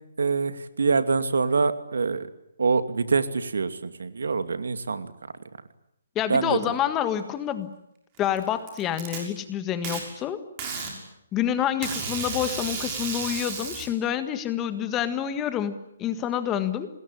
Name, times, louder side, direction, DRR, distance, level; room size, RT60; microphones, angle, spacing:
voice 1, 0.2-2.3 2.6-5.1 6.3-6.6, right 4 dB, 90° right, 10 dB, 2.5 m, -25 dB
voice 2, 6.2-7.7 8.2-10.4 11.3-16.9, left 10 dB, 15° left, 11 dB, 1.6 m, -28 dB
Packing tape duct tape, 8.2-9.2 9.8-10.0 10.6-10.9 11.8-13.9, right 5 dB, 20° right, 6.2 m, -32 dB
27.0 x 20.5 x 9.9 m, 0.77 s
hypercardioid pair, 165°, 0 cm